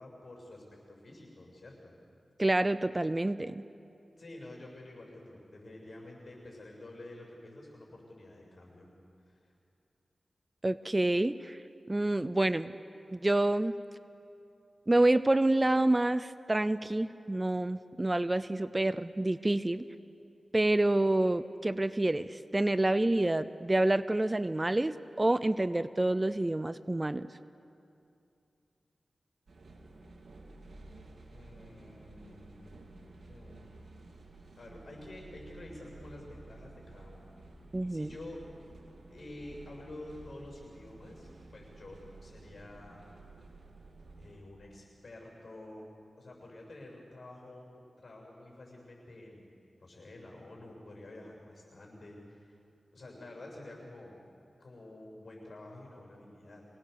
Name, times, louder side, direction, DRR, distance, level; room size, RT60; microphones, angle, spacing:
voice 1, 0.0-1.9 4.2-8.9 9.2-9.5 31.3-33.0 33.3-33.8 34.6-37.3 37.9-38.4 39.1-43.0 44.2-45.9 46.2-49.5 49.8-52.6 52.9-54.2 54.6-56.7, left 1 dB, 60° left, 0 dB, 7.3 m, -49 dB
voice 2, 2.4-3.6 10.6-11.6 11.9-12.7 13.1-13.8 14.9-19.8 20.5-27.3 37.7-38.1, right 1 dB, 25° right, 14 dB, 0.5 m, -28 dB
sound 1, 29.5-44.4, right 2 dB, 80° right, 2.9 m, -53 dB
25.0 x 19.0 x 7.0 m, 2.6 s
wide cardioid pair, 70°, 0 cm